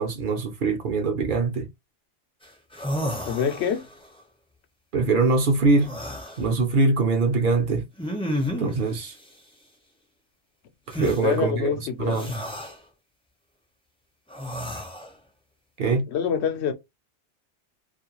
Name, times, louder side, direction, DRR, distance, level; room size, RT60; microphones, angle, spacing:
voice 1, 0.0-1.7 4.9-5.9 6.4-7.8 8.6-9.1 10.9-11.7 12.0-12.3 15.8-16.0, right 3 dB, 55° right, 0.7 m, -23 dB
sound 1, 2.4-2.5 2.7-4.0 5.8-6.4 8.0-8.8 10.9-11.2 12.1-12.7 14.3-15.1, equal, 5° left, 0.5 m, -31 dB
voice 2, 3.3-3.9 11.0-12.2 16.1-16.7, left 7 dB, 75° left, 0.9 m, -26 dB
2.4 x 2.2 x 2.9 m
omnidirectional pair, 1.2 m